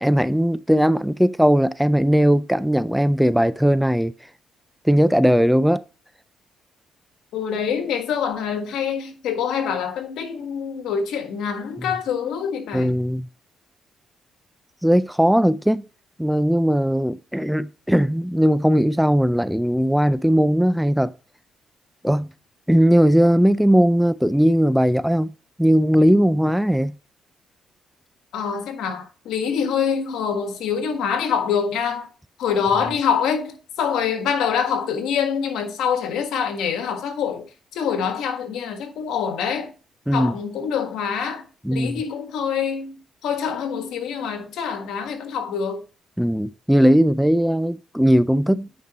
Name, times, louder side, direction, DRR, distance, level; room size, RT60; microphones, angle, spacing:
voice 1, 0.0-4.1 4.8-5.8 12.7-13.3 14.8-15.8 16.2-21.1 22.0-22.3 22.7-25.3 25.6-26.9 40.1-40.3 41.6-42.0 46.2-48.7, equal, ahead, 0.4 m, -18 dB
voice 2, 7.3-13.0 28.3-32.1 32.4-37.4 37.7-39.7 40.1-45.8, left 7 dB, 85° left, 1.6 m, -25 dB
9.3 x 5.2 x 2.9 m
cardioid pair, 90°, 0 cm